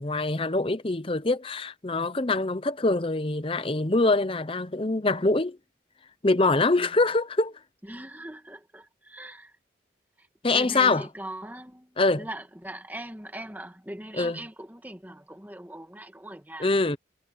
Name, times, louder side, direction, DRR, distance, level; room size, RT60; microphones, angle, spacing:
voice 1, 0.0-5.6 6.2-7.5 10.4-11.1 12.0-12.3 14.2-14.4 16.6-17.0, left 2 dB, 30° left, 0.8 m, -24 dB
voice 2, 7.8-9.6 10.2-10.3 10.5-17.0, right 1 dB, 10° right, 1.7 m, -41 dB
head